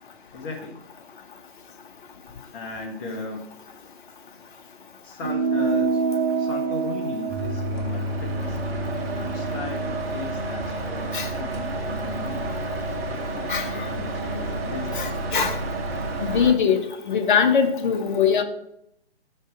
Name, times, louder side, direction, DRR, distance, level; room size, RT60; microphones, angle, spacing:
voice 1, 0.3-0.9 2.5-3.5 5.0-6.0 6.4-8.6 9.0-12.5 13.3-15.1, left 4 dB, 20° left, 1 dB, 0.8 m, -37 dB
sound 1, 5.2-10.0, right 4 dB, 25° right, 0.4 m, -27 dB
sound 2, 7.3-16.5, right 2 dB, 60° right, 1.7 m, -30 dB
voice 2, 13.5-13.9 14.9-15.6 16.2-18.4, left 7 dB, 45° left, 5 dB, 1.1 m, -22 dB
7.2 x 5.3 x 4.8 m, 0.76 s
figure-of-eight pair, 140°, 34 cm